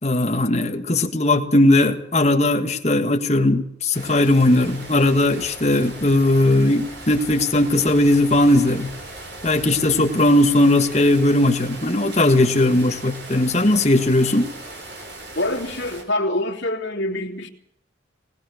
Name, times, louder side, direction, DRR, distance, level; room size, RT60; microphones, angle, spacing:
voice 1, 0.0-8.9 9.4-14.5, left 1 dB, 35° left, 5 dB, 1.7 m, -18 dB
sound 1, 3.9-16.0, right 2 dB, 65° right, 4.8 m, -38 dB
voice 2, 15.3-17.5, left 1 dB, 75° left, 1 dB, 2.9 m, -25 dB
20.5 x 19.5 x 6.6 m, 0.75 s
head